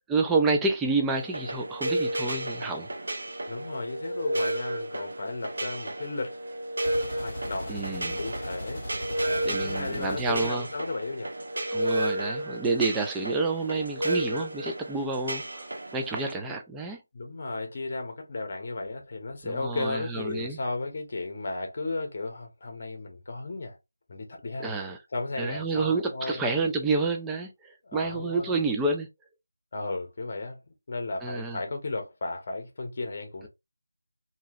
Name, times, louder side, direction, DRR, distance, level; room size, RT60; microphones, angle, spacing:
voice 1, 0.1-2.9 7.7-8.2 9.4-10.7 11.7-17.0 19.4-20.6 24.6-25.0 25.4-29.1 31.2-31.6, right 3 dB, 5° right, 0.3 m, -29 dB
sound 1, 1.1-16.3, right 1 dB, 70° right, 0.9 m, -32 dB
voice 2, 3.5-6.4 7.2-7.8 8.2-11.3 17.1-23.8 24.1-24.7 25.1-26.4 27.8-28.7 29.7-30.6 30.9-33.5, left 2 dB, 30° left, 0.9 m, -34 dB
sound 2, 6.8-10.8, equal, 10° left, 1.6 m, -38 dB
2.9 x 2.8 x 2.4 m
figure-of-eight pair, 175°, 0 cm